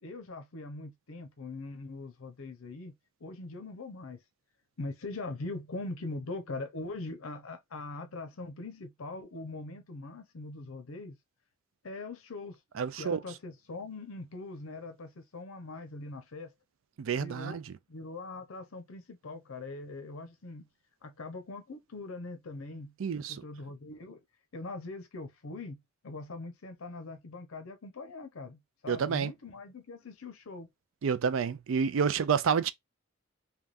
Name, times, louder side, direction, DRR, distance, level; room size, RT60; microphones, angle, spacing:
voice 1, 0.0-2.9 3.2-4.2 4.8-11.2 11.8-12.6 13.0-16.5 17.2-17.6 17.9-20.7 21.0-24.2 24.5-30.7, left 2 dB, 90° left, 0.7 m, -42 dB
voice 2, 12.8-13.2 17.0-17.7 23.0-23.4 28.9-29.3 31.0-32.7, right 6 dB, 75° right, 0.4 m, -29 dB
3.4 x 2.3 x 2.4 m
head